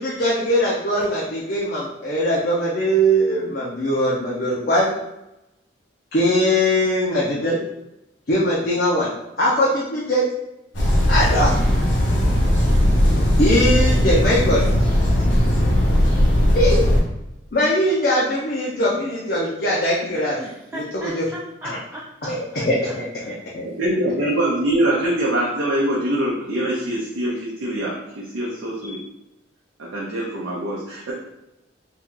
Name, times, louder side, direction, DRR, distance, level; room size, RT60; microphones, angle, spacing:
voice 1, 0.0-4.9 6.1-7.6 8.3-9.1 9.4-10.3 11.1-11.5 13.4-14.7 16.5-16.9 17.5-20.4 20.7-21.3 21.6-21.8 22.2-23.7 24.2-24.3, equal, 50° left, -6 dB, 0.6 m, -21 dB
sound 1, 10.7-17.0, equal, 80° left, 0.9 m, -18 dB
voice 2, 20.4-22.3 22.9-23.0 23.2-23.3, right 1 dB, 10° right, -5 dB, 0.3 m, -36 dB
voice 3, 23.6-29.0 29.8-31.1, right 1 dB, 80° right, -5 dB, 0.6 m, -23 dB
2.8 x 2.3 x 3.7 m, 0.91 s
head